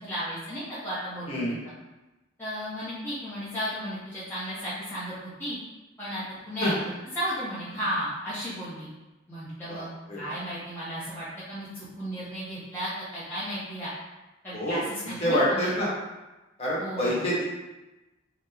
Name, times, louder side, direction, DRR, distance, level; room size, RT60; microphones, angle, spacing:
voice 1, 0.0-1.4 2.4-5.6 6.0-6.7 7.2-8.9 9.3-9.9 10.2-13.9 14.4-15.7 16.8-17.2, equal, 10° left, -11 dB, 0.6 m, -34 dB
voice 2, 9.7-10.4 14.5-14.8 15.2-15.9 16.6-17.4, equal, 30° left, -7 dB, 0.9 m, -27 dB
2.8 x 2.0 x 3.5 m, 1.1 s
head